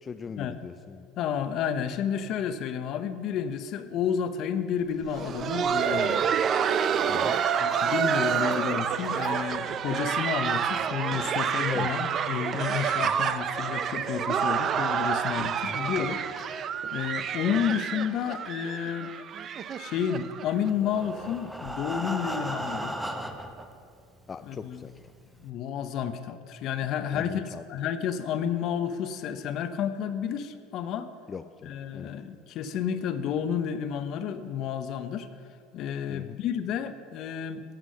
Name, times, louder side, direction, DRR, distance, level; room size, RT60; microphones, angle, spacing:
voice 1, 0.0-1.1 7.1-7.4 11.7-11.9 13.0-13.3 15.6-15.9 24.3-24.9 27.1-27.6 31.3-32.1 36.1-36.4, left 5 dB, 30° left, 9 dB, 0.4 m, -40 dB
voice 2, 1.2-6.2 7.6-19.1 19.8-22.9 24.4-24.8 25.4-27.4 27.7-31.1 31.6-35.3 35.7-37.6, left 8 dB, 55° left, 10 dB, 0.8 m, -31 dB
Laughter, 5.0-20.7 21.0-21.1 21.7-21.8 22.3-22.5 23.6-23.7, right 7 dB, 45° right, 0.5 m, -28 dB
Breathing, 20.7-23.7 24.4-24.5 24.9-25.0 25.4-25.5, right 1 dB, 5° right, 1.0 m, -35 dB
11.5 x 7.5 x 6.3 m, 2.3 s
hypercardioid pair, 90°, 0 cm